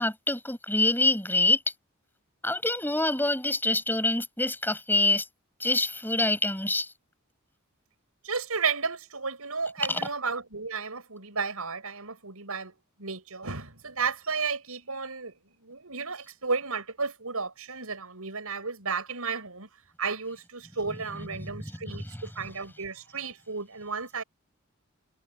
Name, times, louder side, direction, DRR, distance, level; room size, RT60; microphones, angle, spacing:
voice 1, 0.0-1.6 2.4-5.3 5.6-6.9 9.9-10.0 21.2-22.2, left 2 dB, 10° left, 7.8 m, -26 dB
voice 2, 8.2-12.7 13.0-15.3 15.6-19.7 20.0-24.2, right 5 dB, 80° right, 5.7 m, -33 dB
head